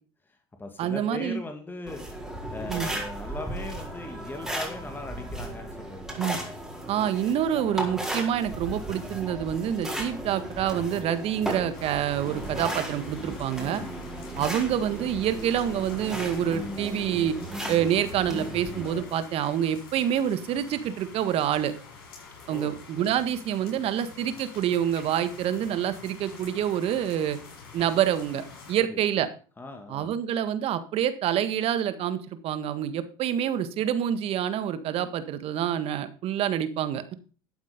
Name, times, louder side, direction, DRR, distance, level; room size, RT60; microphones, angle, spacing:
voice 1, 0.3-2.0 2.5-6.2 22.5-22.8 28.8-29.0 29.6-30.1, left 2 dB, 15° left, 4 dB, 2.2 m, -39 dB
voice 2, 0.8-1.4 2.7-2.9 6.2-6.4 6.9-13.8 14.4-17.3 17.7-21.7 22.5-27.4 27.7-29.3 29.9-37.1, right 10 dB, 55° right, 11 dB, 1.7 m, -27 dB
sound 1, 1.9-19.0, right 1 dB, 5° right, 4.7 m, -35 dB
sound 2, 11.7-28.8, left 5 dB, 90° left, 6.4 m, -47 dB
12.5 x 8.2 x 5.2 m, 0.38 s
hypercardioid pair, 85°, 12 cm